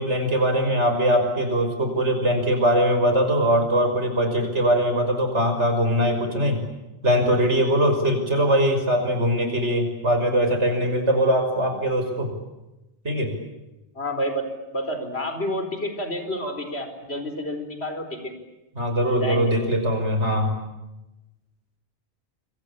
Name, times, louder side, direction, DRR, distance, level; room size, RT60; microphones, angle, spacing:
voice 1, 0.0-6.6 7.0-12.3 13.0-13.3 18.8-20.6, equal, 80° right, 6 dB, 6.2 m, -21 dB
voice 2, 13.9-14.4 14.7-18.3 19.2-19.5, equal, 65° left, 7 dB, 4.9 m, -29 dB
27.0 x 24.5 x 8.8 m, 0.98 s
omnidirectional pair, 1.2 m